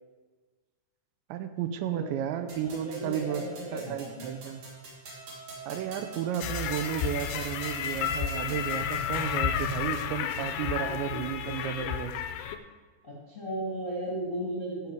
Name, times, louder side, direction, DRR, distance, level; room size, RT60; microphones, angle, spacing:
voice 1, 1.3-3.4 3.7-4.6 5.7-12.2, right 10 dB, 85° right, 10 dB, 2.8 m, -33 dB
sound 1, 2.5-9.3, right 2 dB, 50° right, 3.8 m, -45 dB
voice 2, 2.6-4.3 13.0-14.9, right 1 dB, 30° left, -6 dB, 1.3 m, -35 dB
sound 2, 6.4-12.6, left 8 dB, 80° left, 2.6 m, -31 dB
14.5 x 6.9 x 4.8 m, 1.4 s
omnidirectional pair, 5.2 m